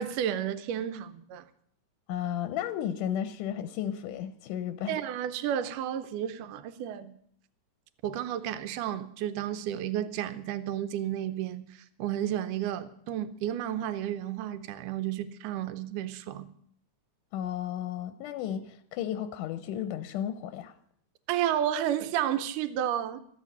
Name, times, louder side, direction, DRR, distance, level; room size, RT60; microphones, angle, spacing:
voice 1, 0.0-1.5 4.9-7.2 8.0-16.5 21.3-23.2, right 10 dB, 85° right, 2.3 m, -32 dB
voice 2, 2.1-5.0 17.3-20.8, left 10 dB, 90° left, 2.3 m, -33 dB
14.0 x 7.5 x 9.5 m
omnidirectional pair, 3.6 m